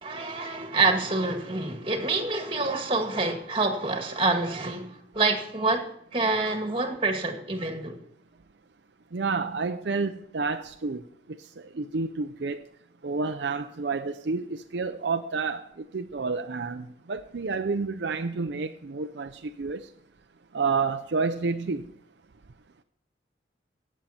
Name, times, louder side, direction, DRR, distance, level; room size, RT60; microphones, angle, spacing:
voice 1, 0.0-5.8 6.1-8.0, right 3 dB, 30° right, 1.9 m, -27 dB
voice 2, 9.1-11.0 11.8-12.6 13.0-15.6 15.9-19.3 19.6-19.8 20.5-21.8, right 4 dB, 70° right, 0.6 m, -29 dB
17.0 x 7.4 x 4.3 m
head